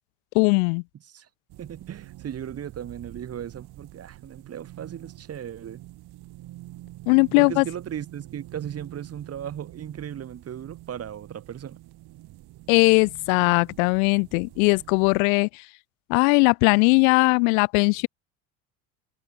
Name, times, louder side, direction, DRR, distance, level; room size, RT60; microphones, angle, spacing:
voice 1, 0.3-0.8 7.1-7.6 12.7-15.6 16.1-18.1, left 34 dB, 70° left, 0.5 m, -19 dB
sound 1, 1.5-15.2, right 16 dB, 60° right, 6.1 m, -46 dB
voice 2, 1.6-5.8 7.3-11.8, right 9 dB, 35° right, 1.3 m, -36 dB
hypercardioid pair, 75°, 44 cm